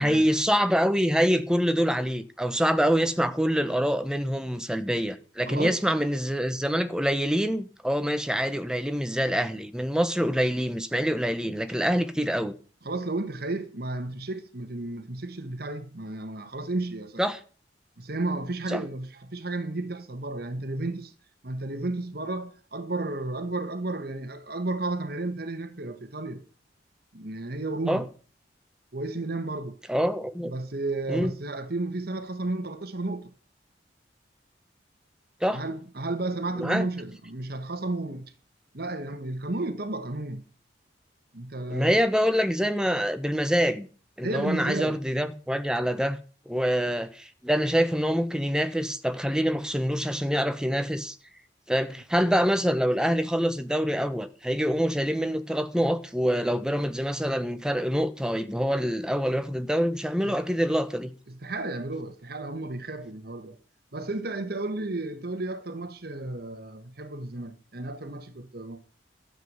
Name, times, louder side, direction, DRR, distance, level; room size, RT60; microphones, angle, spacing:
voice 1, 0.0-12.5 17.2-17.4 18.7-18.8 27.9-28.0 29.9-30.5 31.1-31.3 35.4-35.6 36.6-36.8 41.7-43.9 44.2-46.2 46.5-51.2 51.7-61.1, equal, 5° right, 1.1 m, -25 dB
voice 2, 5.5-5.8 12.8-17.2 18.0-21.1 21.4-26.4 27.1-28.0 28.9-29.8 30.4-33.3 35.5-38.3 38.7-40.4 41.3-41.9 44.2-45.0 60.2-60.4 61.3-63.6 63.9-68.8, right 2 dB, 60° right, 1.5 m, -32 dB
13.0 x 8.0 x 8.1 m
head